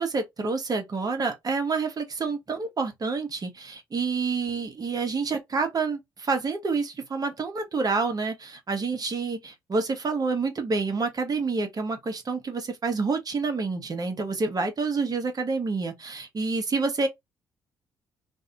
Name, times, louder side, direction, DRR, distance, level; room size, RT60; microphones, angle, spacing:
voice 1, 0.0-17.1, right 4 dB, 40° right, 1.1 m, -28 dB
2.6 x 2.6 x 2.4 m
hypercardioid pair, 50°, 10 cm